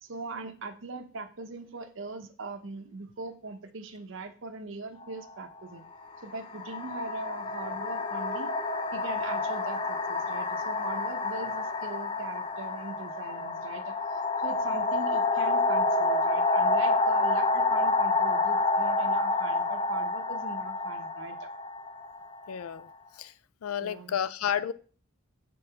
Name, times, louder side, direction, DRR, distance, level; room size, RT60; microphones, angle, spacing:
voice 1, 0.0-5.8 6.2-8.5 8.9-21.5 23.8-24.2, right 3 dB, 65° right, 9 dB, 0.7 m, -41 dB
sound 1, 5.0-5.2 6.1-22.8, left 3 dB, 25° left, 0.4 m, -28 dB
voice 2, 22.5-22.9 23.2-23.3 23.6-24.7, left 8 dB, 90° left, 17 dB, 0.4 m, -31 dB
5.4 x 3.8 x 5.7 m, 0.42 s
head